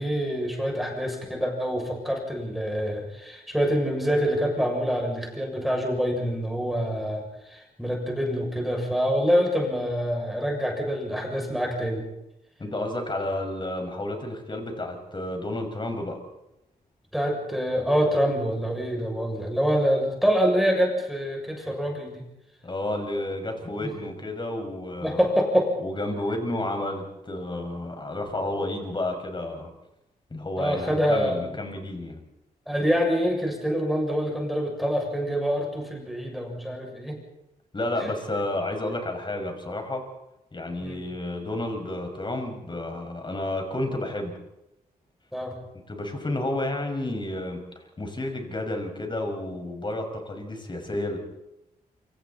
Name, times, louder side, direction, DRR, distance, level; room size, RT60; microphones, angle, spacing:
voice 1, 0.0-12.0 17.1-22.2 23.8-23.9 25.0-25.7 30.6-31.4 32.7-37.2 38.0-38.1 40.8-41.0 45.3-45.5, equal, ahead, 1 dB, 7.0 m, -26 dB
voice 2, 12.6-16.2 22.6-25.3 25.8-29.7 30.3-32.2 37.7-40.0 40.5-44.3 45.9-47.6 48.0-51.2, left 1 dB, 30° left, 4 dB, 5.9 m, -31 dB
28.0 x 26.0 x 4.3 m, 0.88 s
cardioid pair, 90°, 16 cm